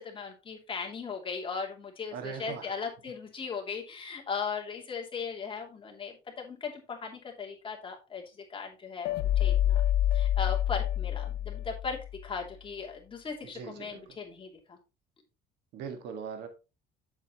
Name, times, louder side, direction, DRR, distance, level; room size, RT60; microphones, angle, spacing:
voice 1, 0.0-9.8 10.1-14.8, left 5 dB, 30° left, 2.9 m, -38 dB
voice 2, 2.1-2.7 13.4-14.0 15.7-16.5, right 6 dB, 80° right, 1.8 m, -40 dB
sound 1, 9.0-12.2, left 12 dB, 75° left, 0.4 m, -27 dB
8.2 x 7.6 x 3.0 m
cardioid pair, 110°, 17 cm